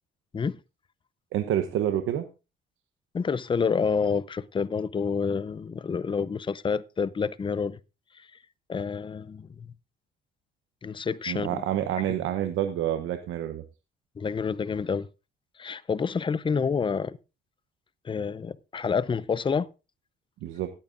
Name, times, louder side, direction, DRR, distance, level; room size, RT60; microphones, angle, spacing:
voice 1, 1.3-2.3 11.3-13.6 20.4-20.7, right 11 dB, 90° right, 0.9 m, -28 dB
voice 2, 3.1-7.8 8.1-8.3 8.7-9.7 10.8-11.5 12.1-12.2 14.2-15.1 15.6-17.2 18.0-19.7, left 5 dB, 25° left, 0.5 m, -28 dB
19.0 x 8.8 x 2.5 m
cardioid pair, 90°, 20 cm